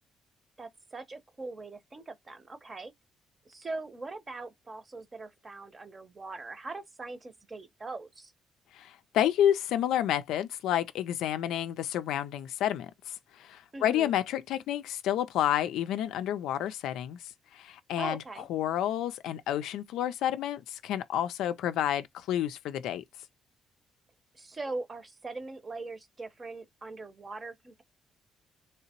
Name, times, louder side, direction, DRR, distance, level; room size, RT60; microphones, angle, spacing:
voice 1, 0.6-2.9 3.4-8.3 13.7-14.1 18.0-18.5 24.3-27.8, right 3 dB, 30° right, 0.7 m, -41 dB
voice 2, 8.7-17.2 17.5-18.2 18.5-23.0, left 11 dB, 90° left, 0.3 m, -30 dB
3.2 x 2.8 x 2.9 m
cardioid pair, 90°, 0 cm